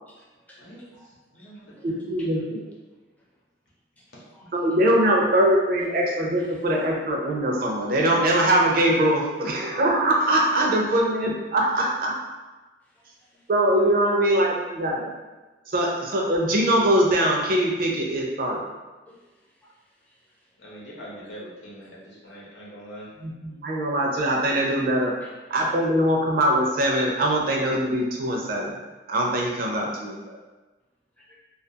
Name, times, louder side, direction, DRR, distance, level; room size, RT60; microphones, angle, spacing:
voice 1, 0.1-1.1 1.3-1.9 2.2-2.3 4.0-4.1 4.3-4.5 13.0-13.4 19.1-19.3 19.6-19.8 20.0-20.2 22.3-22.4 25.2-25.3 31.2-31.4, left 1 dB, 10° left, -5 dB, 0.4 m, -55 dB
voice 2, 0.6-2.4 4.1-4.2 11.6-11.7 13.7-13.9 20.6-23.1, equal, 80° left, -6 dB, 0.8 m, -44 dB
voice 3, 1.8-2.6 4.5-12.2 13.5-15.1 15.7-18.7 23.2-25.2 25.5-28.8 29.1-30.4, right 1 dB, 55° right, 0 dB, 0.4 m, -22 dB
2.4 x 2.3 x 2.7 m, 1.2 s
head